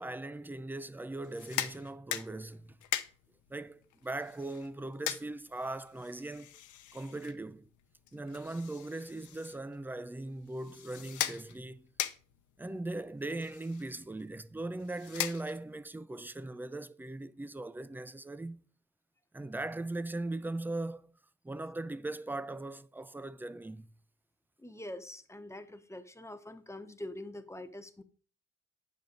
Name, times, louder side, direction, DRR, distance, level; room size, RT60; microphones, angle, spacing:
voice 1, 0.0-2.8 3.5-6.5 6.9-7.7 8.1-11.9 12.6-18.6 19.3-21.2 21.4-23.9, right 2 dB, 5° right, 0.4 m, -39 dB
sound 1, 1.2-15.9, left 11 dB, 80° left, 0.8 m, -42 dB
voice 2, 24.6-28.0, left 1 dB, 10° left, 0.9 m, -44 dB
9.3 x 7.0 x 3.8 m
cardioid pair, 95°, 30 cm